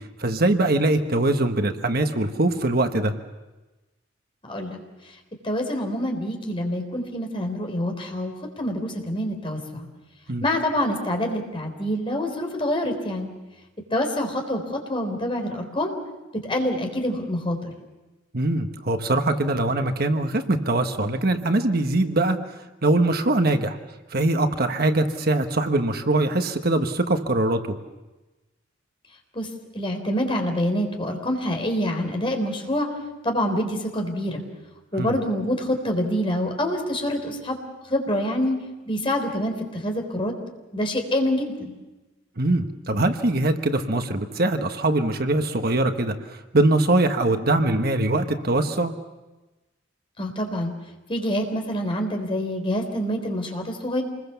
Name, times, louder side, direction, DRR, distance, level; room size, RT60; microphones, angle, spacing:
voice 1, 0.2-3.1 10.3-10.4 18.3-22.4 22.8-23.8 24.1-27.6 35.0-35.1 42.4-46.1 46.5-48.9, right 2 dB, 55° right, 7 dB, 1.3 m, -22 dB
voice 2, 4.4-4.8 5.4-9.9 10.4-13.3 13.9-16.0 16.4-17.7 29.3-29.5 29.7-32.9 33.2-34.4 34.9-37.6 37.9-38.6 38.9-40.3 40.7-41.7 50.2-50.7 51.1-54.0, left 1 dB, 30° left, 3 dB, 3.6 m, -26 dB
27.0 x 21.0 x 7.0 m, 1.1 s
head